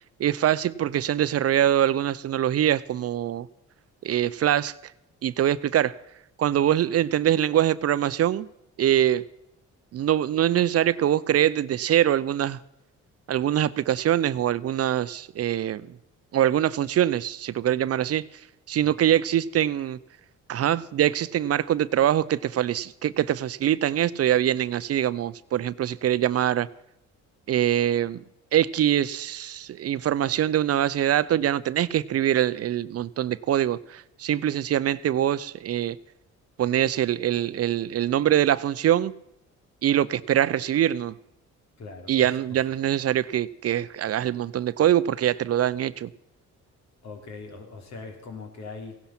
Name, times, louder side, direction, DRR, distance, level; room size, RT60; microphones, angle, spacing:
voice 1, 0.2-3.5 4.0-4.7 5.2-5.9 6.4-8.5 8.8-9.2 9.9-12.6 13.3-15.9 16.3-18.2 18.7-20.0 20.5-26.7 27.5-28.2 28.5-36.0 36.6-39.1 39.8-41.1 42.1-46.1, right 11 dB, 55° right, 17 dB, 0.6 m, -23 dB
voice 2, 41.8-42.6 47.0-49.0, left 4 dB, 65° left, 4 dB, 3.3 m, -41 dB
16.5 x 11.5 x 5.9 m, 0.82 s
cardioid pair, 90°, 30 cm